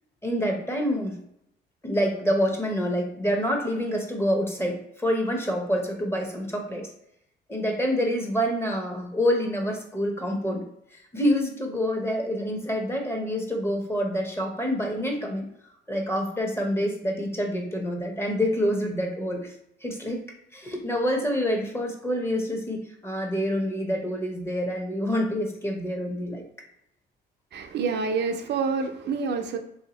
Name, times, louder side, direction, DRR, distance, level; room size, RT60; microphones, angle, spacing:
voice 1, 0.2-1.2 1.8-6.9 7.5-10.6 11.1-15.5 15.9-19.5 19.8-20.3 20.5-26.4, equal, 10° left, 1 dB, 0.8 m, -27 dB
voice 2, 27.5-29.6, right 5 dB, 60° right, 5 dB, 0.4 m, -27 dB
3.1 x 2.8 x 2.9 m, 0.75 s
cardioid pair, 90°, 20 cm